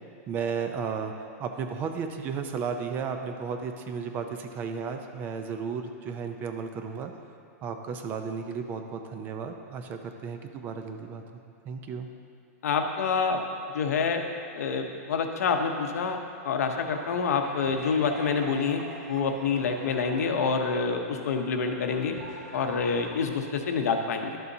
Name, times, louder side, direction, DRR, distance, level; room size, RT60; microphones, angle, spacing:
voice 1, 0.3-7.1 7.6-11.2 11.7-12.1, right 6 dB, 20° right, 6 dB, 0.4 m, -34 dB
voice 2, 12.6-13.4 13.7-14.2 14.5-16.2 16.4-18.8 19.1-22.2 22.5-24.4, left 5 dB, 80° left, 5 dB, 0.8 m, -27 dB
sound 1, 16.7-23.1, right 2 dB, 90° right, 1.8 m, -43 dB
11.5 x 6.9 x 2.7 m, 2.6 s
supercardioid pair, 160°, 8 cm